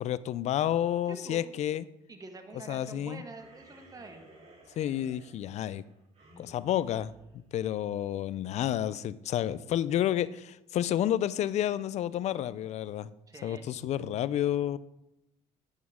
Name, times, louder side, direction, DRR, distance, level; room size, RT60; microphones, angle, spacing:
voice 1, 0.0-1.9 2.7-3.2 4.8-5.8 6.4-13.1 13.4-14.8, left 11 dB, 60° left, 17 dB, 0.5 m, -30 dB
voice 2, 1.1-1.5 2.1-4.3 13.3-13.7, right 2 dB, 25° right, 5 dB, 1.6 m, -46 dB
sound 1, 3.3-8.0, right 2 dB, 55° right, 3.4 m, -57 dB
11.0 x 8.4 x 3.7 m, 0.89 s
supercardioid pair, 80°, 13 cm